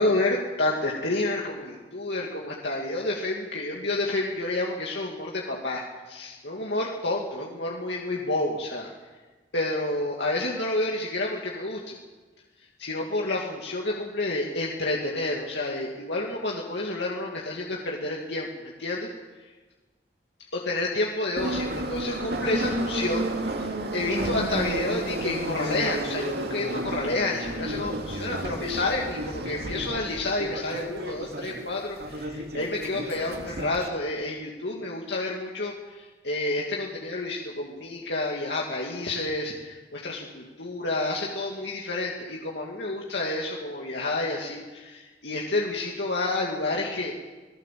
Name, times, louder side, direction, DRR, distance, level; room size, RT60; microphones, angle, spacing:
voice 1, 0.0-8.9 9.5-12.0 12.8-19.1 20.5-47.3, left 2 dB, 75° left, -2 dB, 2.7 m, -29 dB
Subway metro underground, 21.4-33.9, right 1 dB, 65° right, 2.4 m, -32 dB
27.0 x 18.5 x 7.7 m, 1.3 s
head